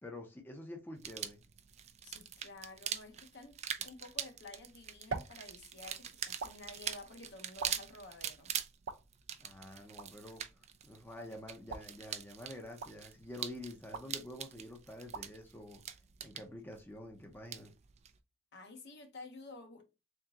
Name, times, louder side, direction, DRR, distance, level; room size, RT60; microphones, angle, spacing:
voice 1, 0.0-1.4 9.4-10.4 10.8-15.8 16.2-17.7, left 1 dB, 10° left, 0.7 m, -48 dB
sound 1, 1.0-18.2, right 9 dB, 35° right, 0.4 m, -44 dB
voice 2, 2.0-8.5 18.5-19.8, left 2 dB, 60° left, 1.0 m, -51 dB
sound 2, 4.4-16.6, right 4 dB, 85° right, 0.7 m, -49 dB
3.6 x 3.6 x 2.8 m
head